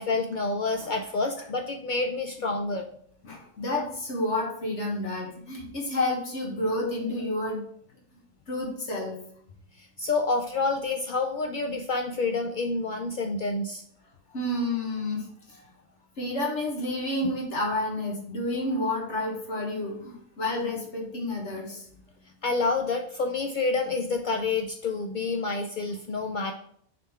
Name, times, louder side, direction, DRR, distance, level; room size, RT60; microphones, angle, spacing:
voice 1, 0.0-2.9 9.8-13.8 22.4-26.5, left 3 dB, 75° left, 4 dB, 0.4 m, -28 dB
voice 2, 3.2-7.6 8.5-9.2 14.3-15.2 16.2-21.8, left 1 dB, 60° left, -2 dB, 1.8 m, -30 dB
6.1 x 3.8 x 4.3 m, 0.65 s
omnidirectional pair, 1.4 m